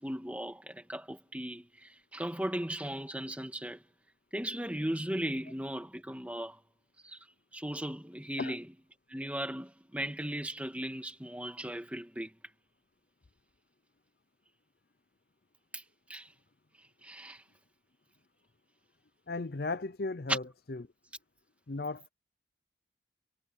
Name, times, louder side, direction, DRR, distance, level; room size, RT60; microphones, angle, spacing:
voice 1, 0.0-3.8 4.3-6.6 7.0-7.2 7.5-8.7 9.1-12.3 15.7-15.8 16.1-16.3 17.0-17.4 20.3-20.4, right 1 dB, 5° right, 2.3 m, -37 dB
voice 2, 19.3-20.4 20.7-20.8 21.7-22.1, left 3 dB, 55° left, 0.6 m, -35 dB
head